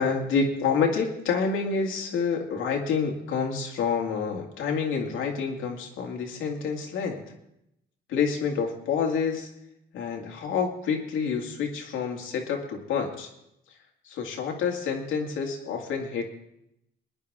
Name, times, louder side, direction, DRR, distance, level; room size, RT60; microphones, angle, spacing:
voice 1, 0.0-7.2 8.1-9.5 9.9-13.3 14.0-16.3, left 5 dB, 85° left, 1 dB, 2.3 m, -28 dB
21.5 x 10.0 x 3.7 m, 0.81 s
cardioid pair, 90°, 20 cm